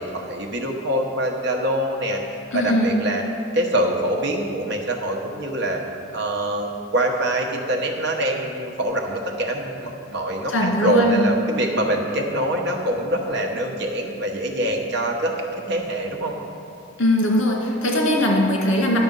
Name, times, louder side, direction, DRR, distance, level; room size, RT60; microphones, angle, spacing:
voice 1, 0.0-2.2 2.5-3.2 3.5-5.8 6.1-16.3, right 1 dB, 60° right, 1 dB, 1.1 m, -24 dB
voice 2, 2.5-3.0 10.5-11.3 17.0-19.0, left 1 dB, 75° left, -1 dB, 1.9 m, -20 dB
11.0 x 6.0 x 5.3 m, 2.5 s
head